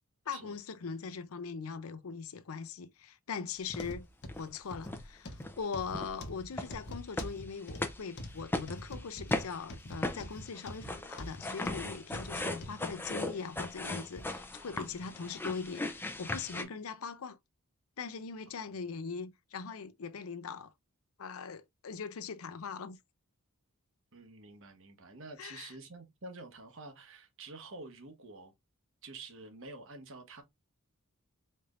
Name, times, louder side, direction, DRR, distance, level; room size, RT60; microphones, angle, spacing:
voice 1, 0.3-4.1 4.4-17.4 18.0-20.7 21.2-23.0 25.4-25.7, left 5 dB, 75° left, 0.5 m, -41 dB
sound 1, 3.7-12.8 13.4-13.5 14.2-14.3, left 1 dB, 50° left, 0.9 m, -45 dB
sound 2, 3.7-3.9 4.3-4.6 4.8-5.1 5.4-5.6 5.9-16.6, left 2 dB, 10° left, 0.5 m, -38 dB
voice 2, 24.1-28.5 29.0-30.4, right 2 dB, 60° right, 1.1 m, -48 dB
4.3 x 3.3 x 2.5 m
head